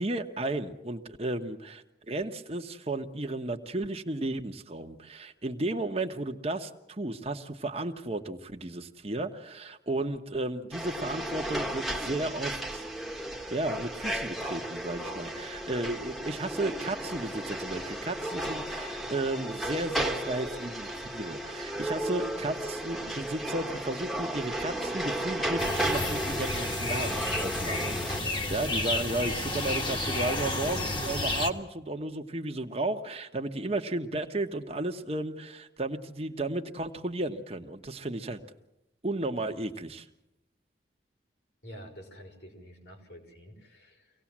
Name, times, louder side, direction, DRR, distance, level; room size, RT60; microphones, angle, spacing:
voice 1, 0.0-12.9 13.5-38.4 39.0-40.1, right 2 dB, 35° right, 5 dB, 1.2 m, -34 dB
sound 1, 10.7-28.2, right 1 dB, ahead, 1.4 m, -34 dB
sound 2, 25.6-31.5, left 2 dB, 25° left, 1.8 m, -31 dB
voice 2, 41.6-44.1, equal, 65° left, 2 dB, 5.8 m, -48 dB
25.0 x 18.0 x 7.4 m, 0.87 s
head